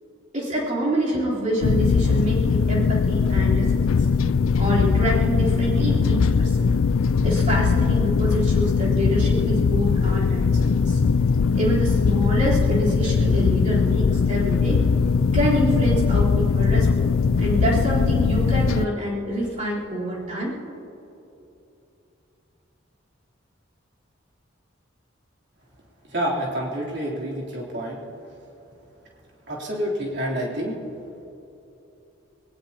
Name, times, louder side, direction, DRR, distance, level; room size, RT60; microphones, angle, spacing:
voice 1, 0.3-4.0 4.6-6.7 7.2-11.0 11.5-14.8 15.3-17.1 17.4-20.6, equal, 40° right, -7 dB, 3.7 m, -26 dB
sound 1, 1.6-18.9, left 5 dB, 85° left, 0.4 m, -20 dB
voice 2, 26.1-28.0 29.5-30.8, equal, 55° right, -4 dB, 3.3 m, -28 dB
21.5 x 19.0 x 2.9 m, 2.9 s
head